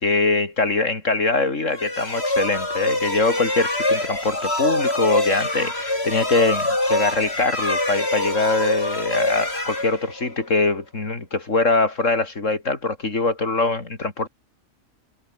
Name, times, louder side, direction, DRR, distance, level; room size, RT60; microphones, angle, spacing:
voice 1, 0.0-14.3, left 3 dB, 65° left, 3.8 m, -23 dB
sound 1, 1.7-10.5, left 1 dB, 50° left, 6.2 m, -25 dB
omnidirectional pair, 1.4 m